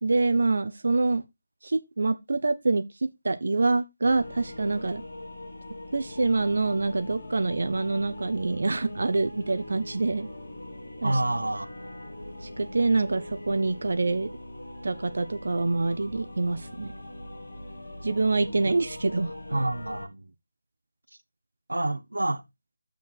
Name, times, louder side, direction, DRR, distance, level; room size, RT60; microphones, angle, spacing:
voice 1, 0.0-1.2 1.6-5.0 5.9-10.3 11.0-11.2 12.4-14.3 14.8-16.9 18.0-19.6, right 3 dB, 60° right, 0.9 m, -26 dB
sound 1, 4.0-20.0, left 1 dB, 70° left, 2.8 m, -41 dB
voice 2, 11.0-11.7 19.5-20.3 21.7-22.4, right 2 dB, 80° right, 1.0 m, -28 dB
7.2 x 6.2 x 4.5 m
figure-of-eight pair, 160°, 0 cm